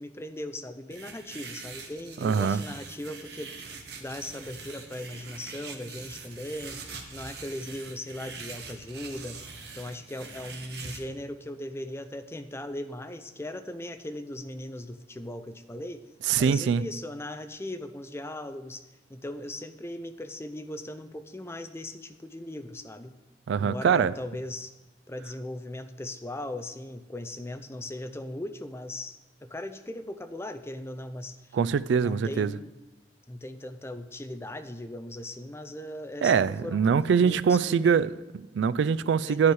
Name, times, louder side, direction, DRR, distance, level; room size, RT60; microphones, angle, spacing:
voice 1, 0.0-9.4 9.7-16.0 16.4-23.1 23.6-24.7 25.1-31.4 31.9-32.7 33.3-38.2 39.0-39.5, left 1 dB, 15° left, 0.5 m, -38 dB
sound 1, 0.9-11.0, right 4 dB, 60° right, 1.2 m, -43 dB
voice 2, 2.2-2.6 16.3-16.9 23.5-24.1 31.5-32.5 36.2-39.5, right 6 dB, 80° right, 0.3 m, -23 dB
11.0 x 7.1 x 4.8 m
head